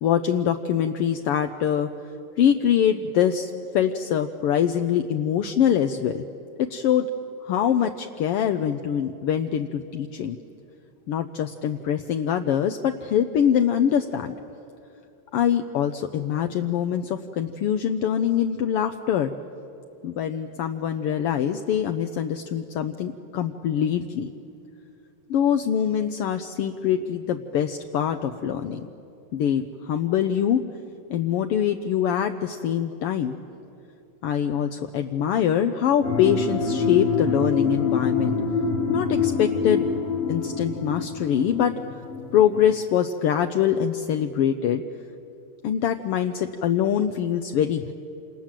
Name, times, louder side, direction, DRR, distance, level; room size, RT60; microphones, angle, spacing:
voice 1, 0.0-1.9 2.4-6.2 6.6-7.1 7.4-10.4 11.1-14.3 15.3-19.3 20.0-24.3 25.3-28.9 29.3-30.6 31.1-33.4 34.2-38.4 38.9-39.8 40.3-41.7 42.3-44.8 45.6-47.9, left 9 dB, 70° left, 6 dB, 1.4 m, -24 dB
sound 1, 36.0-42.8, left 4 dB, 55° left, 0.7 m, -26 dB
28.0 x 27.5 x 7.5 m, 2.7 s
omnidirectional pair, 3.3 m